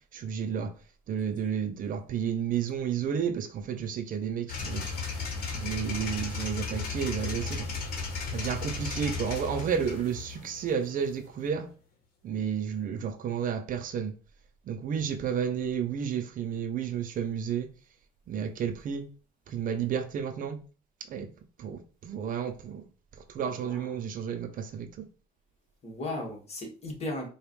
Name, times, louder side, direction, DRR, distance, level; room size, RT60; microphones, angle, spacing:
voice 1, 0.1-0.7 1.1-4.9 5.5-7.7 8.3-11.7 12.2-14.1 14.7-17.7 18.3-19.1 19.5-20.6 21.1-21.3 21.6-22.8 23.3-25.0, right 7 dB, 55° right, 0.6 m, -31 dB
sound 1, 4.5-11.5, left 4 dB, 60° left, 1.2 m, -35 dB
voice 2, 23.5-23.9 25.8-27.3, left 2 dB, 40° left, 1.6 m, -36 dB
5.0 x 2.4 x 3.1 m
cardioid pair, 110°, 17 cm